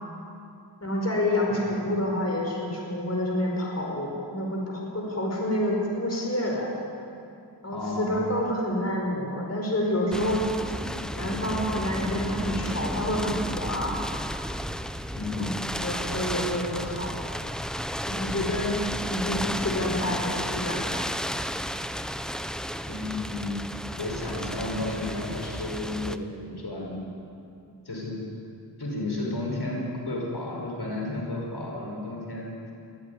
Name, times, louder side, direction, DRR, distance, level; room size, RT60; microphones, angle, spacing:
voice 1, 0.8-6.7 7.6-10.4 10.7-10.8 11.1-14.0 15.3-15.5 15.8-17.1 18.1-18.7 19.1-21.0, left 1 dB, 35° left, -1 dB, 5.1 m, -28 dB
voice 2, 7.7-8.2 15.2-15.5 22.8-23.5 24.0-26.2 26.5-27.0 27.8-28.2 28.8-32.7, left 2 dB, 65° left, -2 dB, 5.4 m, -32 dB
sound 1, 10.1-26.2, equal, ahead, 0.9 m, -33 dB
23.0 x 15.5 x 9.7 m, 2.6 s
wide cardioid pair, 70°, 42 cm